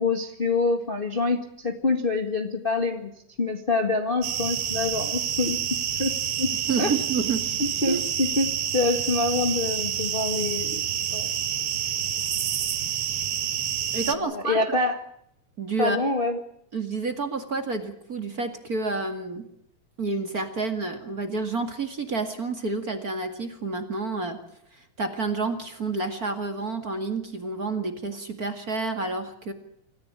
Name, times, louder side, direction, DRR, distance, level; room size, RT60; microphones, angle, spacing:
voice 1, 0.0-3.1 3.4-6.5 6.8-6.9 7.6-10.8 11.1-11.3 14.0-15.0 15.8-16.4, left 3 dB, 45° left, 5 dB, 0.6 m, -26 dB
sound 1, 4.2-14.2, right 9 dB, 65° right, 1.4 m, -28 dB
voice 2, 6.7-7.4 7.8-8.0 13.9-14.6 15.6-16.0 16.7-19.5 20.0-24.4 24.7-29.5, right 3 dB, 30° right, 7 dB, 1.9 m, -29 dB
27.5 x 14.5 x 8.8 m, 0.73 s
omnidirectional pair, 4.2 m